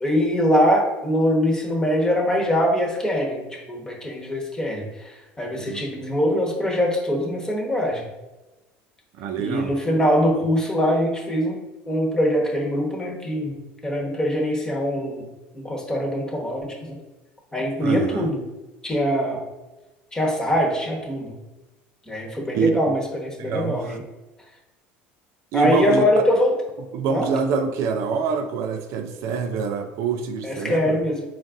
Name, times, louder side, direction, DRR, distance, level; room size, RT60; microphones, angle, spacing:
voice 1, 0.0-8.1 9.4-11.6 11.9-15.2 15.5-17.0 17.5-18.4 18.8-19.4 20.1-21.3 22.1-24.0 25.5-26.5 27.1-27.3 30.4-31.2, equal, 15° left, -1 dB, 1.0 m, -23 dB
voice 2, 9.2-9.7 17.8-18.3 22.5-22.9 23.4-24.0 25.5-26.0 26.9-31.0, right 5 dB, 65° right, 7 dB, 0.4 m, -25 dB
3.9 x 2.4 x 3.6 m, 1.1 s
supercardioid pair, 100°, 5 cm